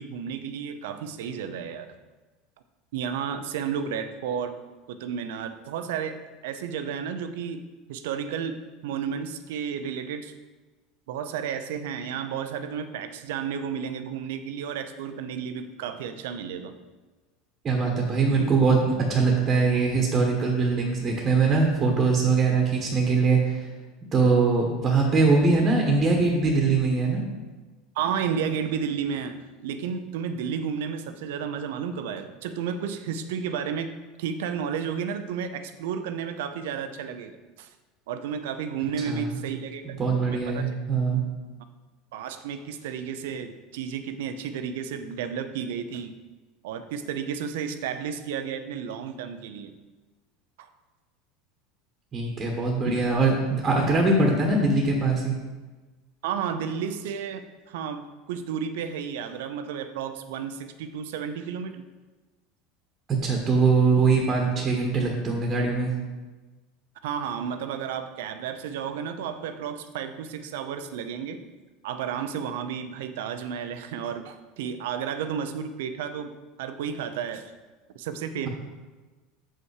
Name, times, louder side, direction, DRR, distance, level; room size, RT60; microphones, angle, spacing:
voice 1, 0.0-1.9 2.9-4.6 4.9-6.2 6.4-10.3 11.1-16.7 18.4-18.5 27.9-33.9 34.2-37.7 38.1-39.8 40.5-40.7 42.1-46.1 46.6-49.7 50.6-50.7 56.2-61.8 67.0-71.4 71.8-77.5 77.9-78.5, right 7 dB, 80° right, 9 dB, 0.7 m, -32 dB
voice 2, 17.6-23.7 24.1-27.2 39.0-39.4 39.8-41.2 52.1-55.4 63.1-65.9, right 4 dB, 30° right, 1 dB, 1.3 m, -22 dB
7.1 x 5.5 x 4.9 m, 1.2 s
supercardioid pair, 120°, 0 cm